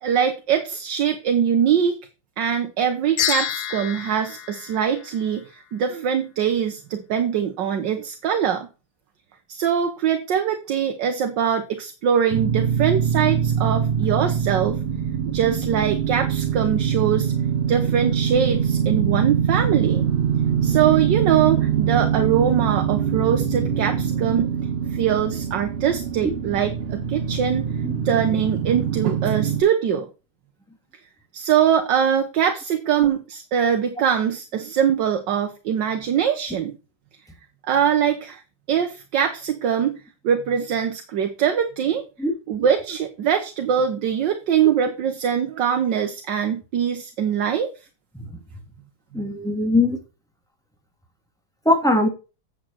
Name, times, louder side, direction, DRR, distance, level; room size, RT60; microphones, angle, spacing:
voice 1, 0.0-2.0 2.4-8.7 9.5-14.8 15.3-17.3 17.7-20.1 20.6-24.5 24.9-27.6 28.0-30.1 31.3-36.7 37.6-38.4 38.7-42.0 42.5-47.7, right 8 dB, 75° right, 6 dB, 1.6 m, -22 dB
sound 1, 3.2-5.6, left 11 dB, 65° left, 1.3 m, -29 dB
sound 2, 12.3-29.6, right 8 dB, 45° right, 0.8 m, -23 dB
voice 2, 49.1-50.0 51.6-52.1, left 2 dB, ahead, 2 dB, 2.5 m, -20 dB
8.3 x 7.4 x 4.3 m, 0.31 s
omnidirectional pair, 2.0 m